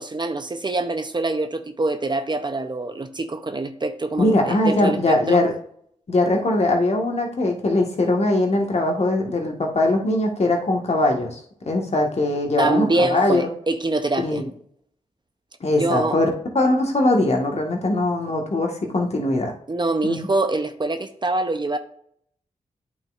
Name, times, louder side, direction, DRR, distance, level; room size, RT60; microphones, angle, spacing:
voice 1, 0.0-5.4 12.6-14.4 15.8-16.2 19.7-21.8, right 2 dB, 35° right, 0.7 m, -24 dB
voice 2, 4.2-5.5 6.1-11.4 11.6-13.5 14.2-14.4 15.6-16.3 16.6-19.5 20.0-20.2, left 2 dB, 50° left, 1.6 m, -21 dB
8.8 x 6.0 x 2.5 m
supercardioid pair, 45°, 14 cm